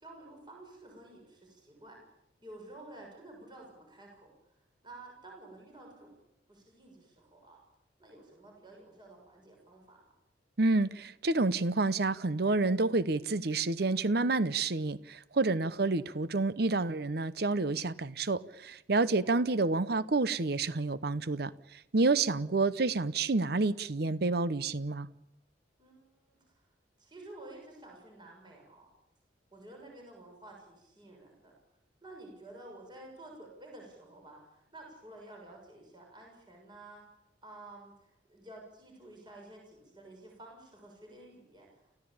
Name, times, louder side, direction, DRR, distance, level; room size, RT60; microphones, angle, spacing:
voice 1, 0.0-2.0 2.4-4.3 4.8-6.2 6.5-7.6 8.0-10.0 18.9-19.5 22.3-22.6 25.8-26.5 27.0-29.0 29.5-31.6 32.0-37.0 37.4-42.0, right 2 dB, 25° right, 6.6 m, -51 dB
voice 2, 10.6-25.1, right 3 dB, 60° right, 0.8 m, -29 dB
29.5 x 16.0 x 8.7 m
head